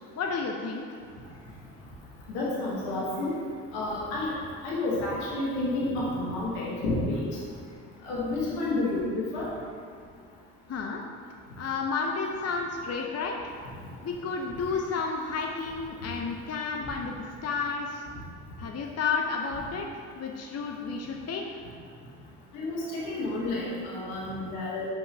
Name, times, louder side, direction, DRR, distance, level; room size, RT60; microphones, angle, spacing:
voice 1, 0.2-0.9 10.7-11.0 11.6-13.5 14.0-18.0 18.6-21.6, left 4 dB, 40° left, 1 dB, 0.7 m, -31 dB
voice 2, 2.3-3.3 3.7-4.3 4.6-7.2 8.1-9.0 9.3-9.5 22.5-22.8 23.0-24.9, left 2 dB, 90° left, -6 dB, 1.3 m, -30 dB
5.9 x 3.9 x 5.2 m, 2.2 s
hypercardioid pair, 50°, 39 cm